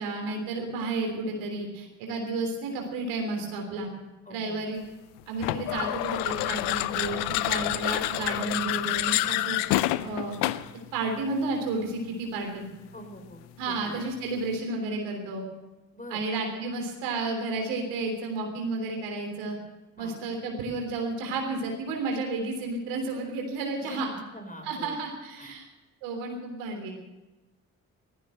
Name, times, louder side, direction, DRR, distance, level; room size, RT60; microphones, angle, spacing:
voice 1, 0.0-3.9 4.3-4.8 5.3-9.6 10.0-10.4 10.9-12.7 13.6-15.4 16.1-19.6 20.0-24.1 24.6-25.6 26.0-26.9, right 3 dB, 90° right, 2 dB, 3.5 m, -32 dB
voice 2, 4.3-4.6 12.9-13.4 13.7-14.0 15.9-16.2 20.0-20.1 23.8-24.0 24.3-25.0 25.4-25.5, equal, 20° left, 5 dB, 4.5 m, -43 dB
sound 1, 5.4-10.8, left 17 dB, 85° left, 0.6 m, -28 dB
15.5 x 14.0 x 6.5 m, 1.1 s
hypercardioid pair, 50°, 40 cm